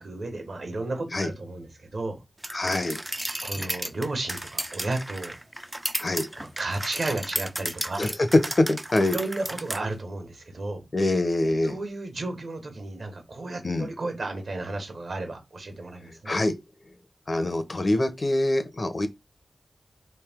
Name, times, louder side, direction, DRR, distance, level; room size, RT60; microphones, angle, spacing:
voice 1, 0.0-2.2 3.4-5.4 6.4-8.0 9.1-10.9 11.6-16.3, right 2 dB, 70° right, 1.2 m, -33 dB
sound 1, 2.4-9.8, right 1 dB, 15° right, 0.3 m, -34 dB
voice 2, 2.5-3.0 6.0-6.3 8.0-8.1 8.6-9.2 10.9-11.8 13.6-13.9 16.3-16.5 17.3-19.1, left 2 dB, 50° left, 0.7 m, -25 dB
3.2 x 2.7 x 3.5 m
cardioid pair, 50°, 0 cm